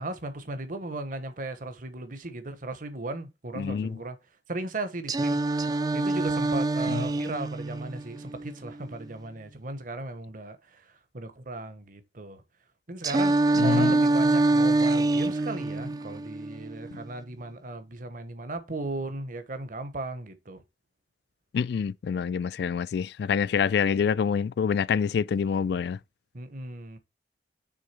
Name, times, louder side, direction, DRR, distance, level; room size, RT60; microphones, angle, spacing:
voice 1, 0.0-4.2 4.5-5.6 5.9-12.4 12.9-20.6 26.3-27.0, right 2 dB, 45° right, 1.0 m, -36 dB
voice 2, 3.6-4.0 6.9-7.0 13.6-14.0 21.5-26.0, left 6 dB, 60° left, 0.3 m, -26 dB
Singing, 5.1-9.1 13.0-17.1, right 2 dB, 20° right, 0.3 m, -25 dB
6.3 x 3.7 x 5.6 m
head